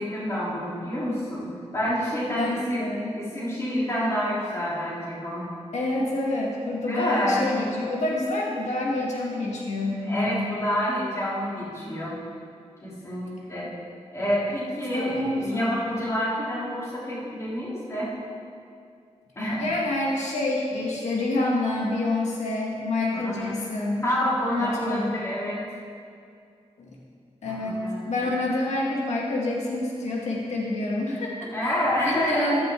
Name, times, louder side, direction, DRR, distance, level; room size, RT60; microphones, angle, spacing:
voice 1, 0.0-1.5 1.7-2.9 3.1-5.5 6.9-7.6 10.1-12.2 12.8-13.7 14.1-18.1 19.3-19.7 23.1-23.6 24.0-25.6 27.5-28.0 31.5-32.6, equal, 25° left, -8 dB, 3.5 m, -28 dB
voice 2, 2.3-3.1 5.7-10.5 14.9-15.7 19.6-24.0 24.6-25.2 27.4-27.8 28.0-31.7 32.0-32.7, left 2 dB, 90° left, -3 dB, 1.9 m, -27 dB
14.0 x 12.5 x 3.8 m, 2.4 s
wide cardioid pair, 180°, 11 cm